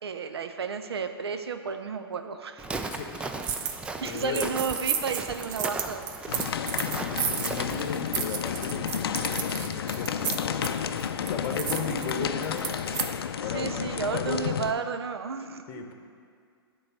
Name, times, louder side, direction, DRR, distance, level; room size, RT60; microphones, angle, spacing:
voice 1, 0.0-2.6 4.0-6.4 13.4-15.6, right 5 dB, 80° right, 8 dB, 0.6 m, -32 dB
Walk footsteps, 2.6-7.9, right 3 dB, 10° right, 0.4 m, -37 dB
voice 2, 2.9-3.4 4.0-4.5 7.2-10.6 11.3-12.9 13.4-13.7 14.1-14.4 15.7-15.9, left 5 dB, 40° left, 4 dB, 1.0 m, -35 dB
sound 1, 3.4-3.8 4.0-13.1, right 8 dB, 50° right, 0.8 m, -33 dB
sound 2, 6.3-14.7, left 8 dB, 70° left, 0.5 m, -31 dB
11.0 x 3.9 x 6.0 m, 2.2 s
hypercardioid pair, 115°, 13 cm